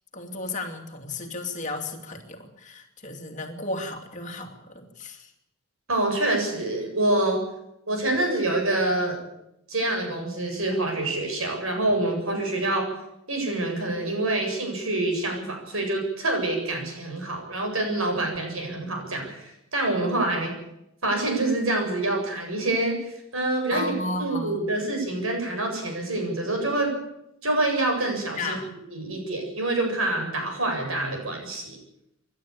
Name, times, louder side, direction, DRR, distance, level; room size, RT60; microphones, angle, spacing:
voice 1, 0.1-5.3 23.7-24.7 28.4-28.7, left 2 dB, 35° left, 4 dB, 2.7 m, -34 dB
voice 2, 5.9-7.4 7.9-9.2 9.7-12.9 13.3-20.5 21.0-23.9 24.2-26.9 27.4-28.6 28.9-31.8, right 2 dB, 70° right, 2 dB, 7.8 m, -26 dB
26.5 x 12.0 x 8.7 m, 0.82 s
head